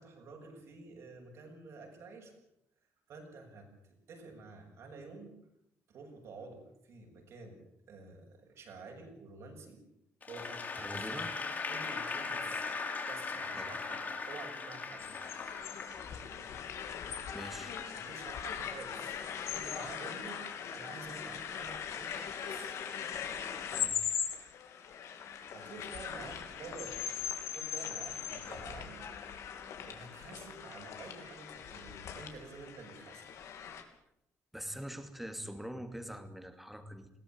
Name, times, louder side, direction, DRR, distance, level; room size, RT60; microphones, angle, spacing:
voice 1, 0.0-2.4 3.1-5.3 5.9-7.6 7.9-9.8 10.3-11.1 11.7-12.8 13.1-15.1 17.9-22.8 25.5-29.1 29.8-33.2, right 3 dB, 60° right, 2 dB, 7.5 m, -50 dB
Applause / Crowd, 10.2-16.5, left 4 dB, 35° left, 4.8 m, -39 dB
voice 2, 10.8-11.3 13.5-13.7 17.3-17.8 23.7-24.0 34.5-37.1, equal, 5° right, 8 dB, 2.6 m, -43 dB
sound 1, 15.0-33.8, left 8 dB, 70° left, 3.4 m, -40 dB
21.5 x 17.0 x 9.0 m, 0.78 s
cardioid pair, 130°, 5 cm